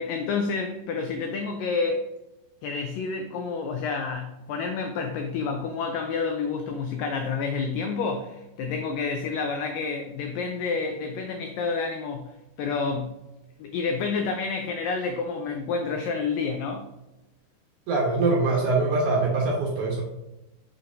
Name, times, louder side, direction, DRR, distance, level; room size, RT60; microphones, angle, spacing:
voice 1, 0.0-2.1 2.6-12.3 12.6-13.2 13.6-16.9, left 4 dB, 85° left, 4 dB, 2.0 m, -29 dB
voice 2, 17.9-20.0, right 3 dB, 65° right, -3 dB, 2.0 m, -23 dB
6.3 x 5.8 x 2.6 m, 0.98 s
omnidirectional pair, 4.6 m